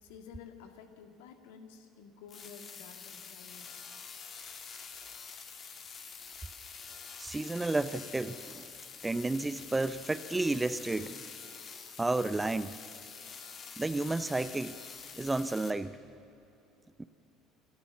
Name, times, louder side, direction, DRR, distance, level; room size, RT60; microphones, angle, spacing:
voice 1, 0.0-4.0, left 6 dB, 70° left, 5 dB, 2.0 m, -52 dB
sound 1, 2.3-15.7, left 6 dB, 40° left, 2.2 m, -47 dB
voice 2, 7.2-8.6 9.0-11.3 12.0-12.8 13.8-14.8 15.2-16.0 17.0-17.1, right 2 dB, 15° right, 14 dB, 0.7 m, -32 dB
28.0 x 13.5 x 7.4 m, 2.8 s
figure-of-eight pair, 65°, 0 cm